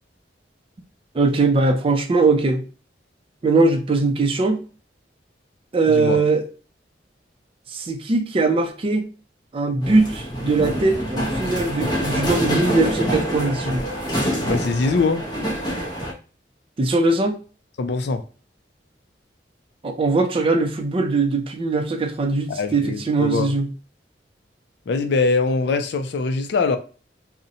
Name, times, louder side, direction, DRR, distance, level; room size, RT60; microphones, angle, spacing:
voice 1, 1.1-2.6 3.4-4.6 5.7-6.4 7.7-9.1 9.5-13.8 16.8-17.4 19.8-23.7, right 3 dB, 30° right, 0.4 m, -20 dB
voice 2, 5.9-6.2 14.4-15.2 17.8-18.2 22.5-23.5 24.9-26.8, left 4 dB, 65° left, 0.4 m, -22 dB
sound 1, 9.8-16.1, equal, 25° left, 0.6 m, -26 dB
2.6 x 2.1 x 2.7 m
head